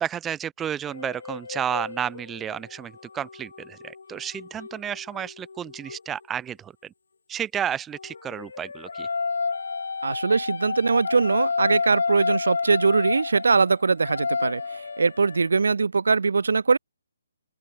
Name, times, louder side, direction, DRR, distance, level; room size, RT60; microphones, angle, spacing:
voice 1, 0.0-6.9 7.3-9.1, right 9 dB, 10° right, 2.0 m, -32 dB
sound 1, 0.9-6.0 8.0-15.5, left 4 dB, 75° left, 2.2 m, -31 dB
voice 2, 10.0-14.6 15.0-16.8, right 4 dB, 80° right, 1.1 m, -21 dB
open air
hypercardioid pair, 165°, 0 cm